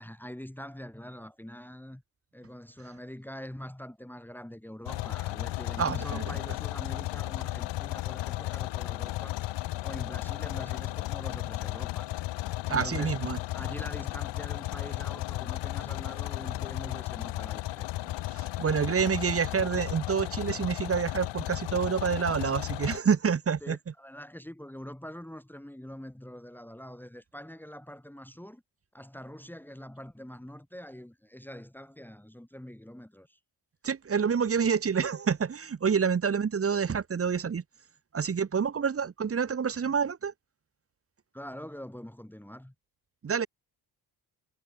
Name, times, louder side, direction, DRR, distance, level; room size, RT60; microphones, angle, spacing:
voice 1, 0.0-2.0 2.3-9.4 9.8-12.1 12.7-13.2 13.5-18.1 23.6-28.6 28.9-33.4 41.3-42.7, equal, 5° left, 2.7 m, -44 dB
sound 1, 4.9-23.0, left 18 dB, 75° left, 0.7 m, -34 dB
voice 2, 5.8-6.2 12.7-13.4 18.3-23.8 33.8-37.6 38.1-40.3 43.2-43.5, right 6 dB, 30° right, 1.1 m, -28 dB
cardioid pair, 75°, 43 cm